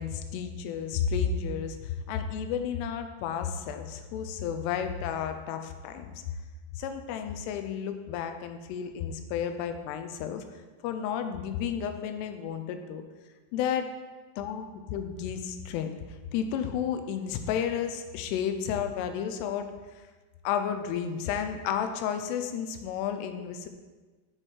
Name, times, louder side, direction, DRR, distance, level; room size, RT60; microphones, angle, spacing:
voice 1, 0.0-6.1 6.8-13.0 13.5-13.8 14.4-15.9 16.3-19.7 20.0-20.1 20.4-23.7, left 8 dB, 80° left, 8 dB, 2.5 m, -32 dB
7.8 x 5.8 x 4.5 m, 1.3 s
omnidirectional pair, 5.2 m